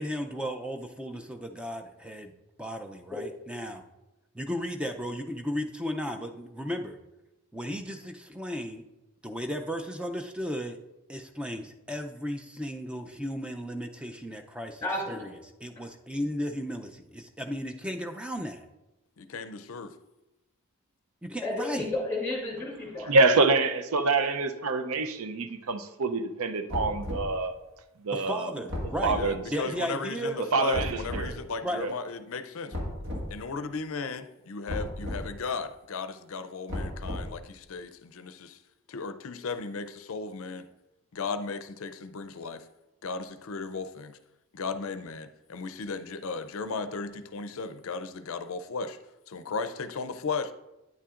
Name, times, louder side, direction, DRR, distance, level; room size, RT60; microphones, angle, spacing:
voice 1, 0.0-2.3 2.6-3.8 4.3-7.0 7.5-8.8 9.2-10.8 11.1-15.3 15.6-18.7 21.2-21.9 28.1-29.2 29.5-30.5 31.6-31.9, equal, 5° right, 0.4 m, -35 dB
voice 2, 14.8-15.2 21.4-23.1, left 2 dB, 10° left, 2.8 m, -32 dB
voice 3, 19.2-19.9 29.1-32.8 33.3-38.6 38.9-40.7 41.1-42.7 43.0-44.2 44.5-49.0 49.3-50.5, left 4 dB, 65° left, 0.5 m, -35 dB
voice 4, 23.1-27.5 28.0-28.5 29.0-29.4 30.5-31.3 31.8-31.9, right 3 dB, 75° right, 0.6 m, -26 dB
sound 1, 26.7-27.3 28.7-29.3 30.7-31.3 32.7-33.3 34.7-35.3 36.7-37.4, left 1 dB, 55° right, 1.7 m, -34 dB
9.3 x 8.6 x 2.5 m
head